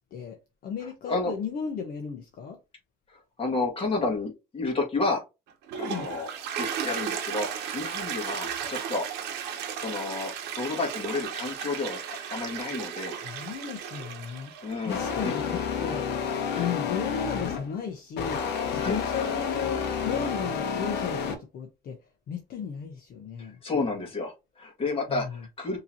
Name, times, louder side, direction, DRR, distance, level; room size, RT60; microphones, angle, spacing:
voice 1, 0.1-2.6 5.9-6.1 13.2-14.5 14.8-16.1 16.4-22.0 22.3-23.6 24.0-24.1 25.1-25.4, left 7 dB, 60° left, 0.9 m, -35 dB
voice 2, 3.1-5.2 5.8-6.3 6.6-9.1 9.5-12.0 12.3-13.2 14.6-15.3 16.5-16.7 18.8-19.0 23.4-25.8, left 3 dB, 35° left, 1.9 m, -31 dB
Toilet flush, 5.5-15.8, right 8 dB, 90° right, 1.0 m, -35 dB
sound 1, 14.9-17.7 18.2-21.4, left 6 dB, 80° left, 1.0 m, -30 dB
5.5 x 3.0 x 2.8 m
cardioid pair, 110°, 17 cm